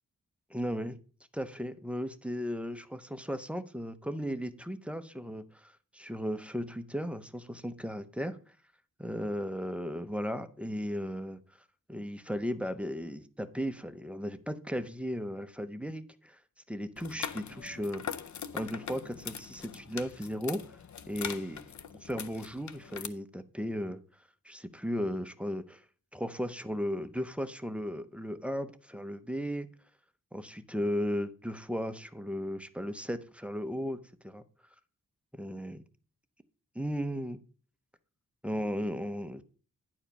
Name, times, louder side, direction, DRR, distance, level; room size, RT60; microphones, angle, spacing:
voice 1, 0.5-1.0 1.3-8.4 9.0-11.4 11.9-16.4 16.7-18.0 18.5-20.8 21.1-21.6 22.0-24.0 24.4-25.8 26.1-29.7 30.3-34.4 35.4-35.8 36.7-37.4 38.4-39.4, equal, 5° right, 0.6 m, -36 dB
sound 1, 17.0-23.1, left 7 dB, 60° left, 0.6 m, -42 dB
10.0 x 4.7 x 5.4 m
wide cardioid pair, 120°, 33 cm